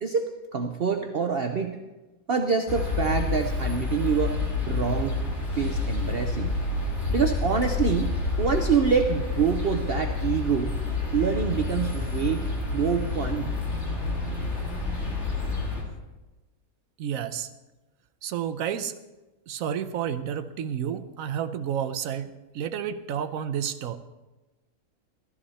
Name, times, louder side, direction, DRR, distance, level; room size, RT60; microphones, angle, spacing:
voice 1, 0.0-1.8 2.3-4.4 4.7-5.2 5.5-6.5 7.1-8.1 8.4-10.7 11.1-12.4 12.7-13.5, right 6 dB, 50° right, 5 dB, 0.8 m, -26 dB
sound 1, 2.7-15.8, left 3 dB, 50° left, 2.4 m, -29 dB
voice 2, 17.0-17.5 18.2-18.9 19.5-24.0, right 9 dB, 70° right, 12 dB, 1.1 m, -30 dB
14.0 x 14.0 x 4.2 m, 1.1 s
omnidirectional pair, 1.5 m